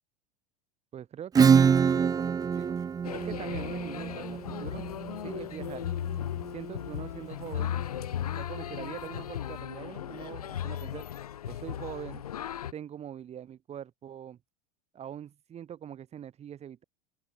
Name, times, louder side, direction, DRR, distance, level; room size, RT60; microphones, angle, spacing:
voice 1, 0.9-2.8 3.1-4.8 5.2-5.8 6.5-7.8 8.4-11.0 11.5-12.3 12.7-14.4 14.9-16.8, right 9 dB, 35° right, 4.8 m, -43 dB
Acoustic guitar / Strum, 1.4-6.7, right 6 dB, 20° right, 0.6 m, -25 dB
sound 1, 3.0-12.7, left 10 dB, 85° left, 1.6 m, -36 dB
open air
hypercardioid pair, 85°, 19 cm